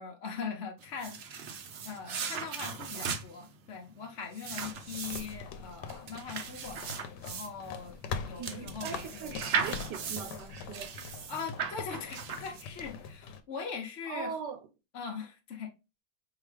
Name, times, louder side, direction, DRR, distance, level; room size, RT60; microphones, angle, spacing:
voice 1, 0.0-1.5 1.8-6.9 7.2-9.7 11.3-14.4 14.9-15.7, left 6 dB, 55° left, 0.9 m, -41 dB
sound 1, 0.8-12.9, right 6 dB, 60° right, 0.6 m, -38 dB
sound 2, 4.6-13.4, left 6 dB, 85° left, 1.2 m, -43 dB
voice 2, 8.4-10.9 14.1-14.6, right 7 dB, 85° right, 1.2 m, -40 dB
4.7 x 2.9 x 3.2 m
omnidirectional pair, 1.8 m